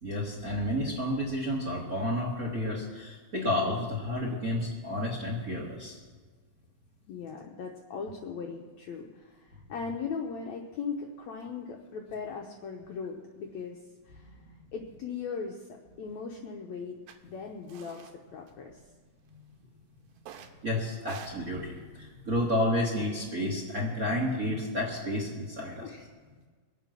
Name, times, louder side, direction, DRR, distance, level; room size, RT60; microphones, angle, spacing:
voice 1, 0.0-6.0 20.6-25.9, left 1 dB, 35° right, -1 dB, 1.6 m, -31 dB
voice 2, 7.1-15.7 16.0-18.9 25.8-26.1, left 5 dB, 70° left, 2 dB, 1.7 m, -39 dB
sound 1, 17.1-17.2 17.7-18.2 18.5-19.2 20.2-20.6 21.0-22.8, right 8 dB, 80° right, 2.7 m, -47 dB
22.0 x 8.1 x 6.0 m, 1.5 s
omnidirectional pair, 4.2 m